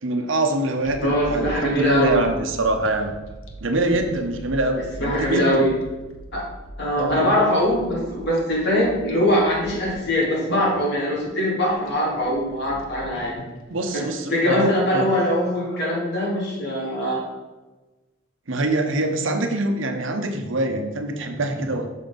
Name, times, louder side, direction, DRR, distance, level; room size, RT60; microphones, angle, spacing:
voice 1, 0.0-3.1 3.6-5.6 7.0-7.3 13.7-15.1 18.5-21.9, right 2 dB, 70° right, 5 dB, 1.0 m, -24 dB
sound 1, 0.8-13.9, right 1 dB, 85° left, 1.1 m, -40 dB
voice 2, 1.0-2.2 5.0-5.7 6.3-6.4 6.8-13.3 13.9-17.2, equal, 60° left, -4 dB, 3.0 m, -22 dB
6.4 x 6.0 x 5.2 m, 1.2 s
head